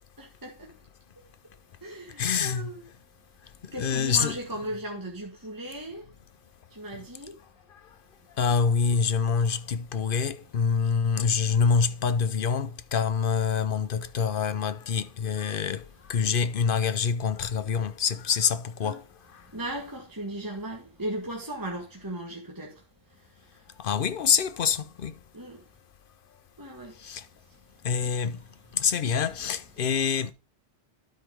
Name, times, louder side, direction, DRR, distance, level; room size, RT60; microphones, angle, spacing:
voice 1, 0.2-0.7 1.2-1.5 1.8-2.8 3.7-6.1 6.7-7.4 18.8-19.0 19.4-23.6 25.3-25.6 26.6-27.0 27.5-27.6 28.0-28.3, right 1 dB, 20° right, 1.7 m, -37 dB
voice 2, 2.2-2.7 3.8-4.4 8.4-15.8 16.1-19.0 23.8-25.1 27.0-27.2 27.8-28.4 28.7-30.3, left 6 dB, 60° left, 0.9 m, -26 dB
12.0 x 5.1 x 3.4 m
omnidirectional pair, 1.1 m